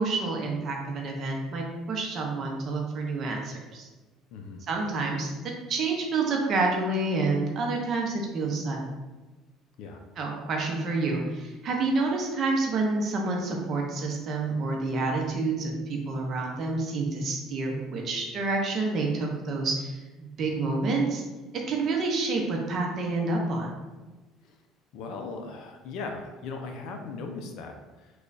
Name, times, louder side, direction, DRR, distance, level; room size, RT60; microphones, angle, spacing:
voice 1, 0.0-3.9 4.7-5.3 5.7-8.9 10.2-21.2 21.7-23.7, right 3 dB, 40° right, 0 dB, 0.6 m, -28 dB
voice 2, 4.3-4.6 9.8-10.0 24.4-24.5 24.9-28.1, left 4 dB, 65° left, 4 dB, 0.5 m, -38 dB
3.2 x 2.3 x 3.8 m, 1.2 s
cardioid pair, 165°, 0 cm